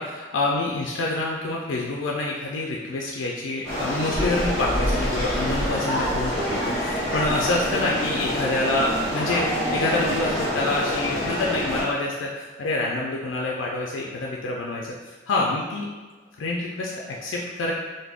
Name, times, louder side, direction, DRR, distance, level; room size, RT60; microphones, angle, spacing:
voice 1, 0.0-15.9 16.4-17.7, left 2 dB, 85° left, -2 dB, 0.4 m, -27 dB
sound 1, 3.6-11.8, equal, ahead, 1.1 m, -26 dB
2.4 x 2.1 x 3.3 m, 1.3 s
head